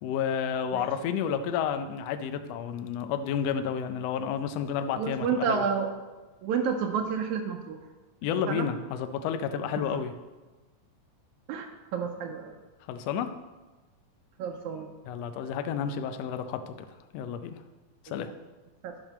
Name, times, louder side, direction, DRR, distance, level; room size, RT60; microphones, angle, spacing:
voice 1, 0.0-5.7 8.2-10.1 12.9-13.3 15.1-16.7 17.1-17.6 18.0-18.3, left 7 dB, 80° left, 8 dB, 1.5 m, -31 dB
voice 2, 5.0-5.9 6.4-7.8 8.5-8.7 11.5-11.7 11.9-12.6 14.4-14.9 18.8-18.9, right 6 dB, 80° right, 3 dB, 2.0 m, -29 dB
10.5 x 4.5 x 5.9 m, 1.2 s
omnidirectional pair, 3.5 m